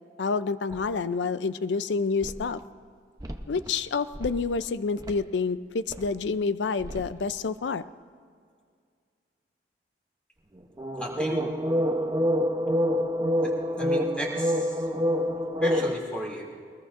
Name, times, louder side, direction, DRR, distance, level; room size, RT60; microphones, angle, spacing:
voice 1, 0.2-2.6 3.5-7.8, left 4 dB, 80° left, 14 dB, 0.5 m, -28 dB
sound 1, 0.7-0.9 2.2-2.3 3.2-3.7 4.1-4.6 5.0-5.2 5.9-6.1 6.8-7.1 10.8-16.0, equal, 20° right, 0.7 m, -27 dB
voice 2, 11.0-11.4 13.4-14.8 15.6-16.5, equal, 5° left, -4 dB, 2.7 m, -34 dB
21.5 x 21.0 x 2.5 m, 2.1 s
head